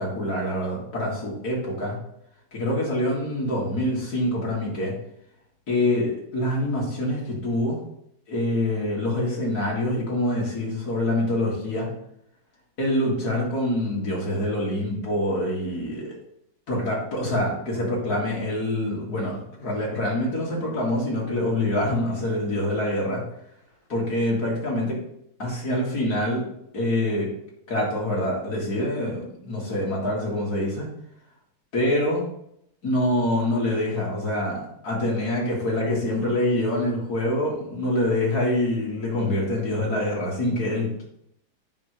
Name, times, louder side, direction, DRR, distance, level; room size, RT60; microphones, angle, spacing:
voice 1, 0.0-2.0 2.5-4.9 5.7-7.8 8.3-11.9 12.8-16.1 16.7-23.2 23.9-25.0 25.4-26.4 26.7-27.3 27.7-30.9 31.7-32.2 32.8-41.0, left 1 dB, 50° left, -4 dB, 2.9 m, -25 dB
9.3 x 5.5 x 3.4 m, 0.74 s
omnidirectional pair, 2.2 m